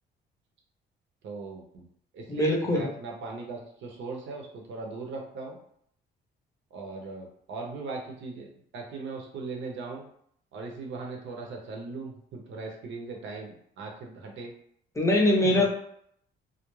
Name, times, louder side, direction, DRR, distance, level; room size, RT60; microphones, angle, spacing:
voice 1, 1.2-1.8 2.1-5.6 6.7-10.0 10.5-14.5 15.4-15.6, right 3 dB, 70° right, 1 dB, 0.7 m, -39 dB
voice 2, 2.3-2.9 15.0-15.7, left 1 dB, 15° left, 0 dB, 0.6 m, -22 dB
2.3 x 2.1 x 3.0 m, 0.68 s
cardioid pair, 90°, 20 cm